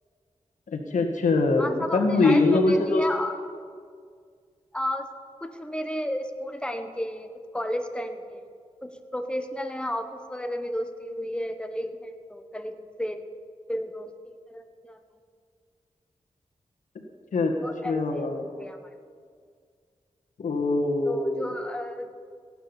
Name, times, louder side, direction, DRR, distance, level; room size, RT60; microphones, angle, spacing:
voice 1, 0.7-3.0 17.3-17.5 17.8-18.4 20.4-21.5, left 3 dB, 90° left, 2 dB, 1.7 m, -23 dB
voice 2, 1.6-3.4 4.7-5.1 5.4-8.5 8.8-13.3 13.7-15.0 17.6-18.3 18.6-18.8 21.0-22.1, left 1 dB, 10° left, 7 dB, 1.4 m, -33 dB
17.0 x 9.2 x 7.1 m, 2.1 s
cardioid pair, 60°, 13 cm